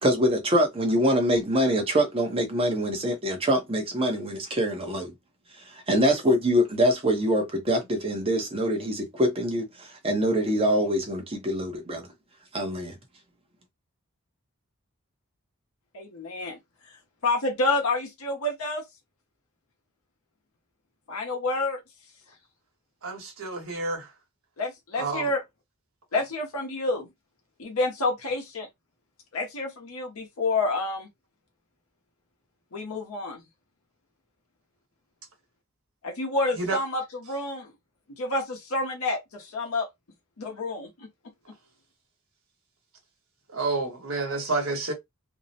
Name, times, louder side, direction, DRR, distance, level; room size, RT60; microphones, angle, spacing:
voice 1, 0.0-5.1 5.7-12.1 12.5-13.0, equal, 25° right, 0.6 m, -24 dB
voice 2, 15.9-16.6 17.2-18.9 21.1-21.8 24.6-25.4 26.1-27.1 27.6-28.7 29.3-31.1 32.7-33.4 36.0-37.7 38.2-39.9 40.4-41.1, left 2 dB, 85° left, 0.7 m, -28 dB
voice 3, 23.0-24.1 25.0-25.3 36.6-36.8 43.5-44.9, right 3 dB, 75° right, 1.1 m, -29 dB
2.6 x 2.0 x 2.7 m
head